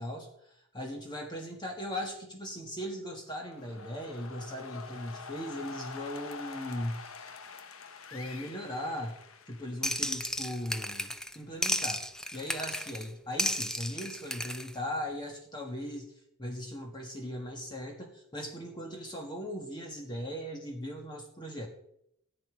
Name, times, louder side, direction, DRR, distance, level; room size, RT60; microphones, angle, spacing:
voice 1, 0.0-7.0 8.1-9.1 9.5-12.0 12.3-16.1 16.4-21.7, equal, 20° left, 1 dB, 1.6 m, -38 dB
sound 1, 3.3-10.2, left 4 dB, 85° left, 1.2 m, -46 dB
sound 2, 9.8-11.4 11.6-13.1 13.4-14.7, left 1 dB, 5° left, 0.6 m, -33 dB
14.5 x 5.3 x 9.7 m, 0.76 s
head